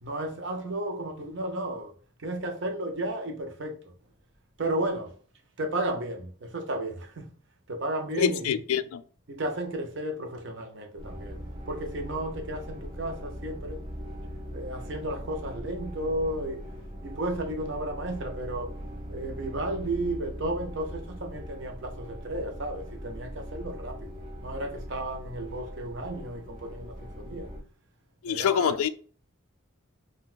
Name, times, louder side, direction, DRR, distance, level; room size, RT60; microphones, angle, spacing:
voice 1, 0.0-1.9 2.2-3.9 4.6-5.2 5.6-7.3 7.7-8.6 9.3-11.4 11.7-13.8 14.5-16.6 17.0-18.8 19.1-24.1 24.4-27.5 28.3-28.8, right 1 dB, 60° right, 0.6 m, -33 dB
voice 2, 8.2-9.0 28.2-28.9, left 8 dB, 90° left, 0.3 m, -25 dB
sound 1, 11.0-27.6, equal, 20° right, 1.0 m, -40 dB
3.8 x 2.2 x 2.5 m
head